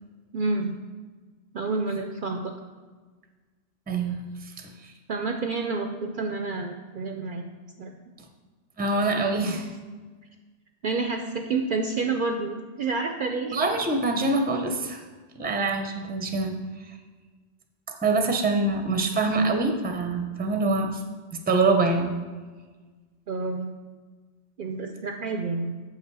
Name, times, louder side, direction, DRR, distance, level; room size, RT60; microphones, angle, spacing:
voice 1, 0.3-0.8 1.5-2.5 5.1-7.4 7.8-7.9 10.8-13.6 23.3-23.7 24.6-25.7, right 3 dB, 60° right, 4 dB, 0.6 m, -29 dB
voice 2, 3.9-4.9 8.8-9.7 13.5-15.0 15.3-16.6 18.0-21.0 21.3-22.2, right 3 dB, 10° right, 4 dB, 0.5 m, -25 dB
7.5 x 5.7 x 4.7 m, 1.4 s
omnidirectional pair, 1.2 m